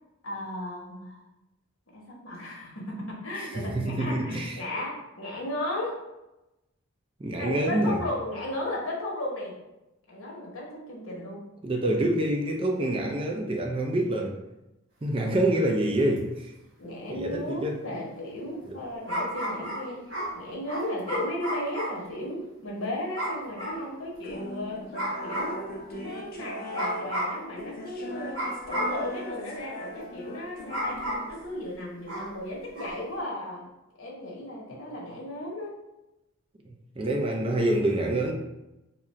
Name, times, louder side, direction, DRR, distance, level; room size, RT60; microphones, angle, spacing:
voice 1, 0.2-1.2 1.9-6.0 7.4-9.5 10.1-11.4 16.8-20.0 20.3-24.8 25.2-31.0 31.3-33.6 34.0-35.8, left 1 dB, 80° left, -3 dB, 1.0 m, -35 dB
voice 2, 3.4-4.6 7.2-8.0 11.6-14.4 15.0-16.5 16.8-17.8 18.7-18.8 36.7-38.3, right 1 dB, 25° right, 2 dB, 0.4 m, -27 dB
sound 1, 16.2-16.3 19.1-22.1 23.1-23.8 24.9-25.6 26.7-27.4 28.3-29.1 30.7-31.4 32.1-32.4 32.7-33.0, equal, 60° right, 1.4 m, -32 dB
sound 2, 24.2-31.6, equal, 45° left, 0.5 m, -39 dB
2.7 x 2.4 x 4.2 m, 0.95 s
head